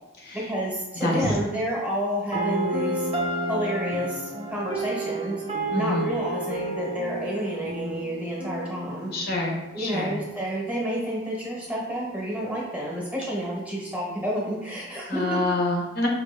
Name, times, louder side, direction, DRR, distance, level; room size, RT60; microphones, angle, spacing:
voice 1, 0.3-3.1 3.5-5.4 5.7-9.2 9.7-15.4, equal, 5° right, -5 dB, 1.1 m, -30 dB
voice 2, 1.0-1.3 5.7-6.1 9.1-10.2 15.1-16.1, left 2 dB, 50° left, -1 dB, 0.8 m, -26 dB
sound 1, 2.3-10.3, right 1 dB, 30° right, 0.5 m, -31 dB
5.3 x 3.0 x 3.3 m, 1.0 s
head